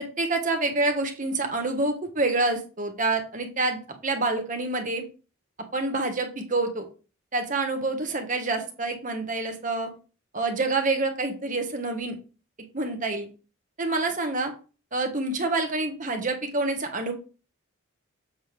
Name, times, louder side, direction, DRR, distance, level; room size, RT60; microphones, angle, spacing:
voice 1, 0.0-5.0 5.7-6.9 7.3-9.9 10.3-12.1 12.7-13.3 13.8-14.5 14.9-17.1, right 2 dB, 40° right, 5 dB, 1.2 m, -27 dB
7.6 x 4.0 x 4.9 m, 0.35 s
head